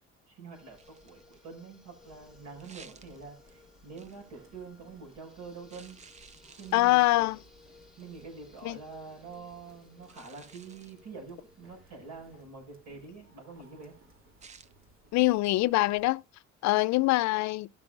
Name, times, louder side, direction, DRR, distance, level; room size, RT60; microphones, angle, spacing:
voice 1, 0.3-6.0 6.5-7.0 8.0-13.9, right 4 dB, 70° right, 5.8 m, -46 dB
sound 1, 0.5-12.4, left 3 dB, ahead, 1.6 m, -60 dB
sound 2, 0.8-1.5 2.6-3.5 4.0-4.3 5.7-7.2 8.0-8.2 10.0-11.0 14.4-14.7, right 5 dB, 25° right, 0.5 m, -54 dB
sound 3, 2.0-16.1, right 2 dB, 45° right, 2.5 m, -61 dB
voice 2, 6.7-7.4 8.6-8.8 15.1-16.2 16.6-17.7, left 20 dB, 65° left, 0.5 m, -24 dB
17.5 x 6.1 x 2.5 m
cardioid pair, 135°, 30 cm